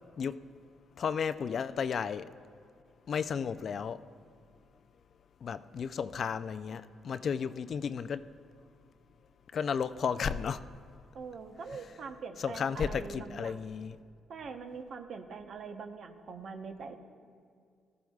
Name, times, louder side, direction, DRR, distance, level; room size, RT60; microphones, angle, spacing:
voice 1, 1.0-2.3 3.1-4.0 5.4-8.2 9.5-10.6 11.7-11.9 12.4-14.0, left 6 dB, 55° left, 0.4 m, -33 dB
voice 2, 11.1-13.6 14.3-17.0, right 5 dB, 60° right, 0.9 m, -43 dB
19.0 x 13.5 x 2.4 m
cardioid pair, 90°, 0 cm